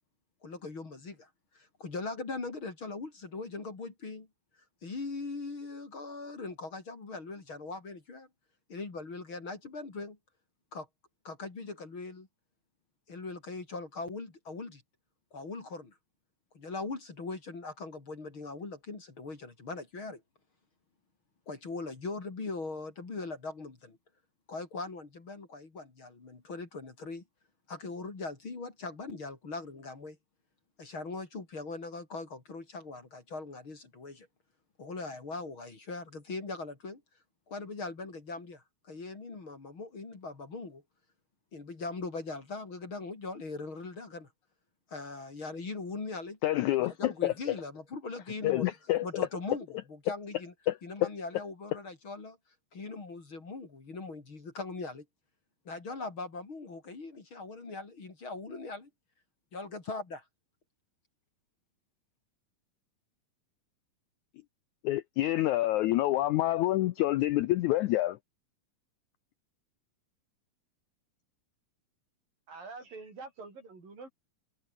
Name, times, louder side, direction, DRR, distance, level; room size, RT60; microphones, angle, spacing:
voice 1, 0.4-1.3 1.5-4.3 4.8-8.3 8.7-10.2 10.7-10.9 11.2-12.3 13.1-14.8 15.3-16.0 16.5-20.2 21.5-24.0 24.5-27.2 27.7-30.2 30.8-34.3 34.8-37.0 37.5-40.8 41.5-44.3 44.9-46.4 46.8-48.7 49.0-50.5 50.8-52.4 52.7-55.1 55.7-58.9 59.5-60.2, left 3 dB, 35° left, 4.2 m, -40 dB
voice 2, 46.4-47.6 48.4-49.3 50.7-50.8 64.8-68.2, left 15 dB, 80° left, 1.7 m, -27 dB
voice 3, 72.5-74.1, right 3 dB, 70° right, 9.6 m, -46 dB
omnidirectional pair, 4.1 m